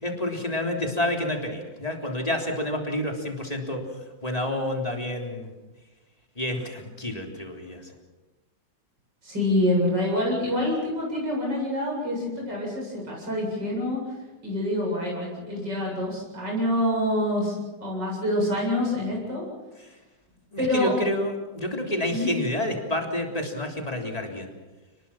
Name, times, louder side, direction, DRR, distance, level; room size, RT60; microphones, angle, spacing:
voice 1, 0.0-3.9 4.2-5.5 6.4-7.9 20.5-24.5, left 1 dB, 20° left, 1 dB, 3.6 m, -29 dB
voice 2, 9.2-14.0 14.4-19.4 20.6-20.9 22.1-22.3, left 1 dB, 75° right, -2 dB, 8.7 m, -26 dB
29.5 x 20.5 x 5.9 m, 1.2 s
omnidirectional pair, 1.9 m